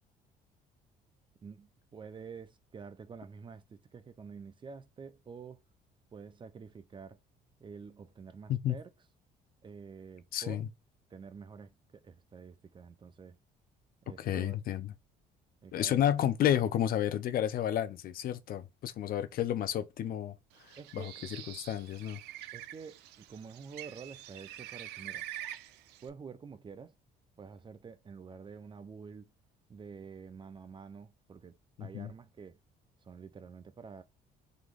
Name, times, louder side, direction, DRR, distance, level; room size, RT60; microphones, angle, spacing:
voice 1, 1.4-5.6 6.1-7.2 7.6-8.9 9.6-10.6 11.1-13.4 14.0-14.6 15.6-16.0 20.8-21.2 22.5-25.2 26.0-26.9 27.4-29.3 29.7-32.6 33.0-34.0, right 5 dB, 30° right, 0.5 m, -48 dB
voice 2, 10.3-10.7 14.2-14.9 15.7-20.3 20.6-22.2 31.8-32.1, left 11 dB, 60° left, 0.7 m, -31 dB
Bird, 20.6-26.1, right 13 dB, 85° right, 0.5 m, -46 dB
3.9 x 3.0 x 3.3 m
cardioid pair, 110°, 17 cm